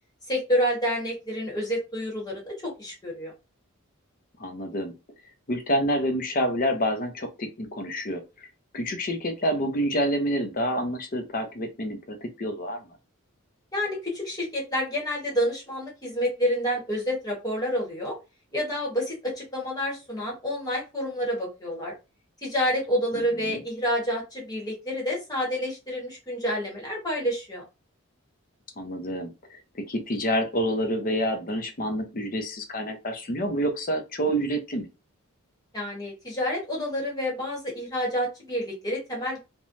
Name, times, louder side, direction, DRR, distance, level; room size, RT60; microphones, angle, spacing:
voice 1, 0.3-3.3 13.7-18.1 18.5-21.9 22.4-27.6 35.7-39.4, equal, 20° left, -3 dB, 1.2 m, -28 dB
voice 2, 4.4-4.9 5.5-8.5 8.7-12.9 23.1-23.6 28.8-34.9, equal, 40° left, 6 dB, 0.6 m, -28 dB
3.1 x 2.2 x 2.6 m, 0.27 s
head